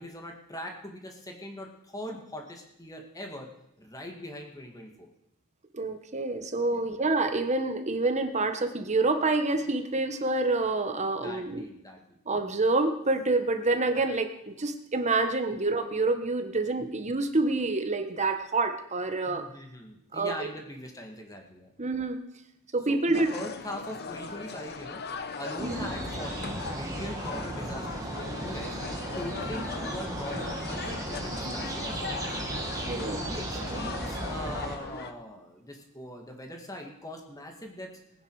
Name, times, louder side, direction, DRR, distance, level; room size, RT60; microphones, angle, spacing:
voice 1, 0.0-3.5 3.8-5.1 6.7-6.9 11.0-12.2 16.8-16.9 19.3-21.7 22.9-25.0 25.4-28.8 29.2-32.4 32.9-37.9, left 1 dB, 15° left, 2 dB, 2.0 m, -41 dB
voice 2, 5.7-11.6 12.3-19.4 20.1-20.5 21.8-22.2 22.7-23.3 25.6-25.9 32.9-33.2 33.7-33.8, right 3 dB, 30° right, 7 dB, 1.2 m, -27 dB
sound 1, 23.1-35.1, left 4 dB, 45° left, 0.9 m, -39 dB
sound 2, 25.6-34.8, right 1 dB, 15° right, 1.9 m, -35 dB
19.0 x 9.7 x 4.8 m, 0.79 s
head